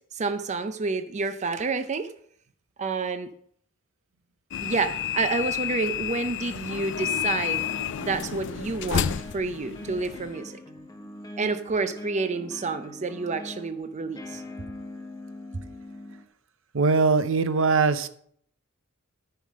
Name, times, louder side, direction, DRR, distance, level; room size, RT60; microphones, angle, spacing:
voice 1, 0.1-2.1 2.8-3.3 4.6-7.7 8.0-10.5 11.4-14.4, right 4 dB, 35° right, 9 dB, 0.5 m, -29 dB
sound 1, 4.5-10.4, left 9 dB, 60° left, 0.4 m, -30 dB
sound 2, 4.9-6.1 6.6-16.2, left 1 dB, 20° left, 0.9 m, -43 dB
voice 2, 16.7-18.1, right 4 dB, 65° right, 12 dB, 0.8 m, -21 dB
13.0 x 5.7 x 6.3 m, 0.64 s
head